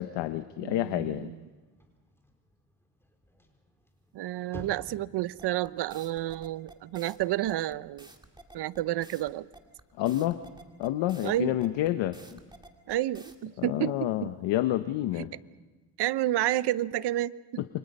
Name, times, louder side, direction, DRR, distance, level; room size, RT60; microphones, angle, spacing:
voice 1, 0.0-1.3 10.0-10.4 10.8-12.4 13.6-15.3 17.6-17.8, left 14 dB, 85° left, 10 dB, 1.0 m, -29 dB
voice 2, 0.6-1.4 4.1-8.1 8.5-9.5 11.2-11.6 12.9-14.3 15.2-15.3 16.0-17.6, right 14 dB, 70° right, 17 dB, 0.8 m, -30 dB
sound 1, 1.2-9.5, left 1 dB, 5° left, 4.3 m, -54 dB
sound 2, 5.4-13.4, right 2 dB, 10° right, 2.3 m, -52 dB
29.0 x 24.5 x 5.4 m, 1.3 s
cardioid pair, 100°, 42 cm